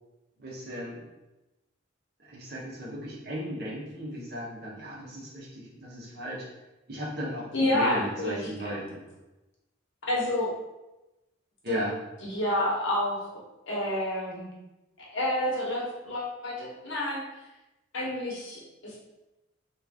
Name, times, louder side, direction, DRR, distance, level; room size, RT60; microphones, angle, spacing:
voice 1, 0.4-1.0 2.3-6.5 6.9-9.0 11.6-11.9, equal, 50° right, -5 dB, 0.9 m, -36 dB
voice 2, 7.5-8.8 10.1-10.5 11.7-11.8 12.2-13.3 13.7-14.5 15.1-17.2 17.9-19.0, left 1 dB, 65° left, -4 dB, 1.0 m, -29 dB
3.0 x 2.5 x 3.4 m, 1.0 s
head